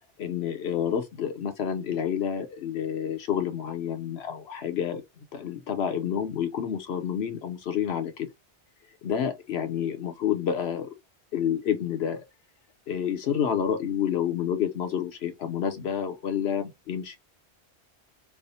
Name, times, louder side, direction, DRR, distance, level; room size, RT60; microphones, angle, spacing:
voice 1, 0.2-5.0 5.3-8.3 9.0-10.9 11.3-12.2 12.9-17.2, left 8 dB, 70° left, 1.0 m, -29 dB
3.5 x 2.1 x 3.9 m
omnidirectional pair, 1.1 m